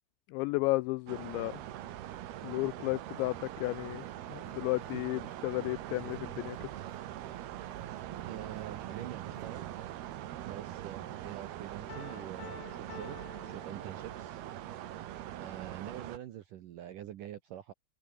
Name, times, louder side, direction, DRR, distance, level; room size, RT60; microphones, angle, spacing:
voice 1, 0.3-1.5 2.4-6.7, left 22 dB, 85° left, 2.6 m, -33 dB
sound 1, 1.1-16.2, right 13 dB, 65° right, 3.1 m, -42 dB
sound 2, 3.0-9.5, left 5 dB, 40° left, 5.5 m, -61 dB
voice 2, 8.2-10.1 10.4-15.0 15.4-17.7, right 11 dB, 85° right, 1.9 m, -46 dB
Piano, 11.9-14.5, left 9 dB, 65° left, 5.1 m, -50 dB
omnidirectional pair, 5.6 m